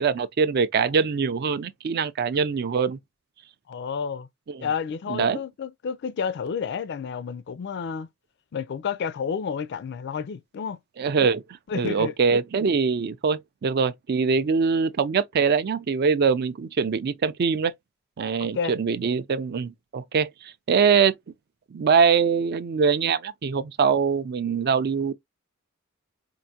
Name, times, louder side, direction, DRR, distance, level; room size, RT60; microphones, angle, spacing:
voice 1, 0.0-3.0 4.5-4.7 5.1-5.4 11.0-11.4 11.7-17.7 18.2-21.2 21.7-25.1, right 5 dB, 50° right, 0.4 m, -23 dB
voice 2, 3.7-4.3 4.6-8.1 8.5-10.8 11.7-12.1 18.4-18.8, left 6 dB, 55° left, 0.4 m, -30 dB
4.5 x 2.5 x 2.7 m
head